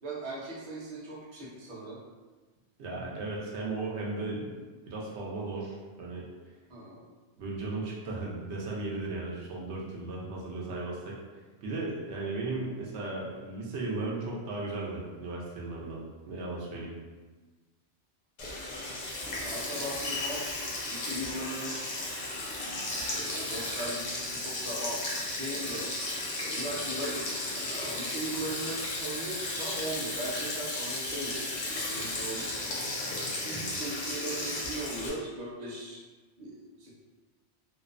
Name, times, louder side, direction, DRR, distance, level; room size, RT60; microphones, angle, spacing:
voice 1, 0.0-2.0 6.7-7.1 19.4-21.8 23.1-25.9 26.4-32.7 33.4-36.0 36.4-36.9, right 1 dB, 45° right, -6 dB, 0.7 m, -39 dB
voice 2, 2.8-6.3 7.4-11.2 11.6-16.0 16.3-16.9 33.5-33.8, right 2 dB, 85° right, -3 dB, 0.9 m, -36 dB
Sink (filling or washing), 18.4-35.1, left 2 dB, 50° left, 0.6 m, -34 dB
2.5 x 2.1 x 2.4 m, 1.3 s
omnidirectional pair, 1.1 m